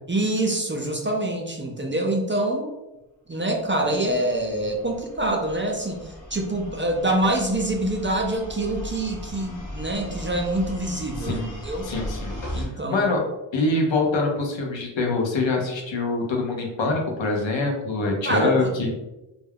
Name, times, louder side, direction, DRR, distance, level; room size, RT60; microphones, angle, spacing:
voice 1, 0.1-2.7 3.3-11.8 12.5-13.1 18.2-18.7, right 1 dB, 30° right, 1 dB, 0.3 m, -25 dB
sound 1, 4.0-12.7, left 1 dB, 45° left, 0.7 m, -37 dB
voice 2, 11.2-11.5 11.8-13.2 13.5-19.0, left 3 dB, 75° left, 1 dB, 0.7 m, -25 dB
2.2 x 2.1 x 3.3 m, 0.99 s
wide cardioid pair, 70°, 46 cm